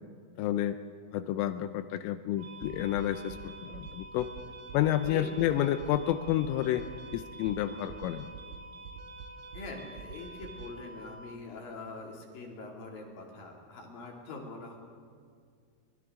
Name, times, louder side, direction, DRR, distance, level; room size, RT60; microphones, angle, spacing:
voice 1, 0.4-0.8 1.1-4.3 4.7-6.9 7.1-8.3, left 12 dB, 80° left, 10 dB, 3.1 m, -30 dB
sound 1, 2.4-11.3, right 3 dB, 65° right, 3.4 m, -46 dB
voice 2, 5.0-5.6 9.5-14.8, left 3 dB, 50° left, 0 dB, 3.9 m, -43 dB
29.5 x 24.5 x 3.7 m, 2.2 s
omnidirectional pair, 5.9 m